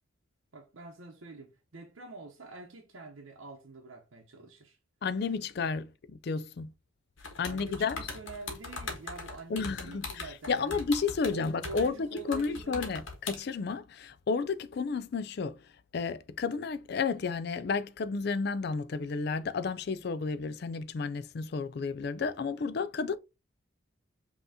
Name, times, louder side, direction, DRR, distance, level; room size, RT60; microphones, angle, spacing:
voice 1, 0.5-4.8 7.5-10.8 11.3-12.8, right 3 dB, 80° right, 0.8 m, -46 dB
voice 2, 5.0-6.7 7.4-8.1 9.5-15.6 15.9-23.2, left 4 dB, 50° left, 0.4 m, -32 dB
sound 1, 7.2-13.4, left 4 dB, 70° left, 1.3 m, -40 dB
5.5 x 2.9 x 2.7 m
head